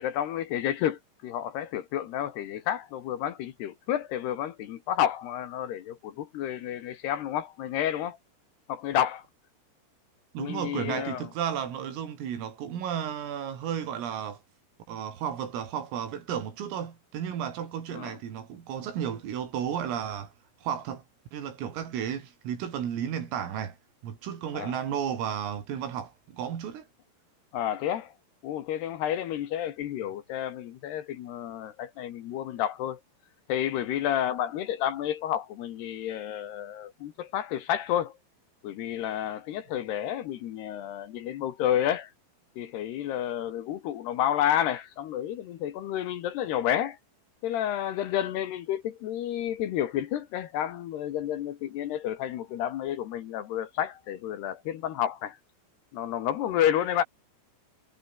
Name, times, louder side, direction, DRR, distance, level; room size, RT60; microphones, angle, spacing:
voice 1, 0.0-8.2 8.7-9.2 10.4-11.3 17.9-18.2 24.5-24.8 27.5-28.1 28.4-33.0 33.5-38.1 38.6-42.1 42.6-47.0 47.4-55.4 55.9-57.0, left 11 dB, 65° left, 3.1 m, -30 dB
voice 2, 10.3-14.4 14.9-20.3 20.6-21.0 21.3-23.8 24.0-26.9, right 9 dB, 90° right, 6.3 m, -33 dB
omnidirectional pair, 5.8 m